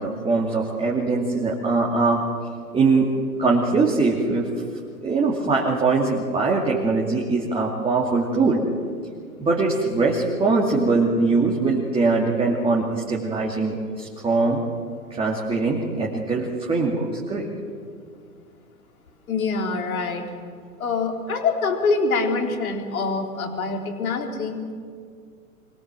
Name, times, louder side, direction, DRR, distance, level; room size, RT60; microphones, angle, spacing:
voice 1, 0.0-2.2 2.7-3.1 3.4-4.5 5.0-8.6 9.4-14.6 15.1-17.5, right 3 dB, 10° right, -3 dB, 2.6 m, -22 dB
voice 2, 19.3-20.3 20.8-24.6, left 4 dB, 70° left, 3 dB, 3.8 m, -25 dB
25.0 x 18.0 x 7.7 m, 2.2 s
hypercardioid pair, 120°, 44 cm